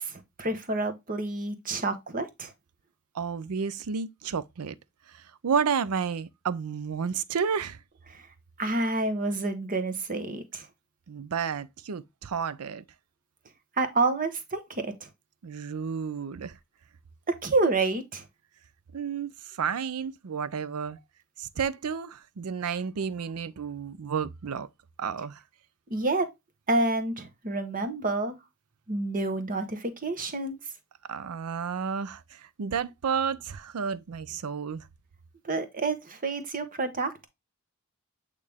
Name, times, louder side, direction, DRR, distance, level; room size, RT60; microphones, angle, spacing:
voice 1, 0.0-2.5 8.1-8.3 8.6-10.7 13.8-15.1 17.3-18.2 25.9-26.3 26.7-28.4 28.9-30.6 35.4-37.3, right 2 dB, 40° right, 1.1 m, -28 dB
voice 2, 3.1-4.7 5.1-7.8 11.1-12.8 15.4-16.6 18.9-21.0 21.4-24.7 25.0-25.4 31.1-34.9, right 6 dB, 85° right, 0.5 m, -31 dB
8.5 x 3.3 x 3.5 m
head